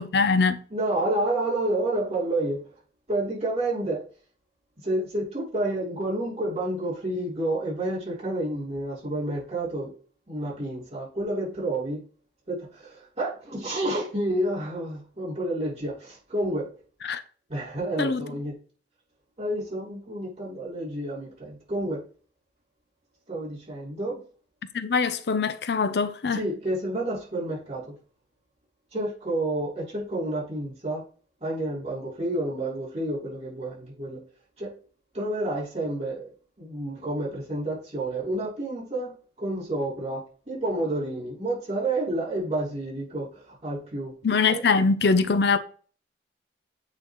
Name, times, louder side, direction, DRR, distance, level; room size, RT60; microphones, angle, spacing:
voice 1, 0.0-0.6 17.0-17.2 18.0-18.2 24.7-26.4 44.2-45.6, left 4 dB, 65° left, 0.5 m, -23 dB
voice 2, 0.7-2.7 3.1-4.1 4.8-9.9 10.3-12.0 12.5-16.7 17.5-18.5 19.4-22.0 23.3-24.2 26.3-28.0 28.9-31.0 31.4-34.2 34.6-34.7 35.1-36.3 36.6-44.2 44.5-44.6, right 1 dB, 35° right, 3.4 m, -29 dB
8.5 x 3.9 x 3.1 m
head